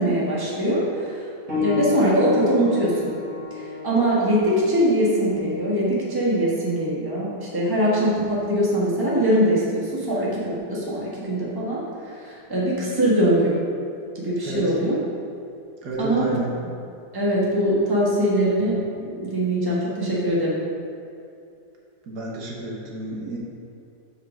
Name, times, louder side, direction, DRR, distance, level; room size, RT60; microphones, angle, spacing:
voice 1, 0.0-3.1 3.5-13.6 14.1-15.0 16.0-16.3 17.1-20.6, right 1 dB, 15° right, -6 dB, 1.4 m, -22 dB
sound 1, 1.5-11.7 12.7-12.8 13.5-13.6, left 5 dB, 50° right, 1.8 m, -34 dB
voice 2, 15.8-16.5 22.1-23.4, right 2 dB, 75° right, -3 dB, 1.8 m, -29 dB
6.5 x 4.8 x 6.2 m, 2.6 s
omnidirectional pair, 1.7 m